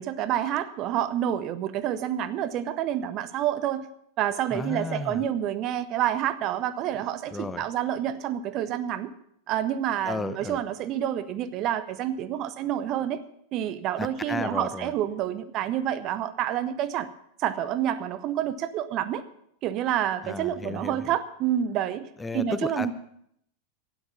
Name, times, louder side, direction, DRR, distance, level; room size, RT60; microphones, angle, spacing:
voice 1, 0.0-3.9 4.2-9.1 9.5-13.2 13.5-17.1 17.4-19.2 19.6-22.1 22.3-22.9, right 11 dB, 35° right, 13 dB, 0.7 m, -28 dB
voice 2, 4.5-5.2 7.3-7.6 10.0-10.6 14.0-14.9 20.2-21.1 22.2-22.9, left 3 dB, 10° left, 12 dB, 0.8 m, -33 dB
12.0 x 9.7 x 7.1 m, 0.70 s
figure-of-eight pair, 90°, 0 cm